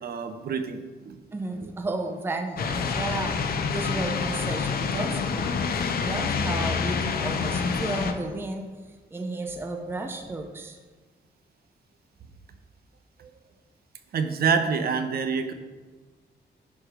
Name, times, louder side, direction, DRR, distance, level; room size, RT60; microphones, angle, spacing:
voice 1, 0.0-1.2 1.6-1.7 13.2-13.3 14.1-15.5, right 5 dB, 60° right, 8 dB, 0.8 m, -27 dB
voice 2, 1.3-3.4 3.7-8.7 9.1-10.8, right 2 dB, 15° right, 5 dB, 0.6 m, -33 dB
sound 1, 2.6-8.1, left 5 dB, 60° left, 0.7 m, -27 dB
10.5 x 4.9 x 5.0 m, 1.3 s
wide cardioid pair, 175°, 18 cm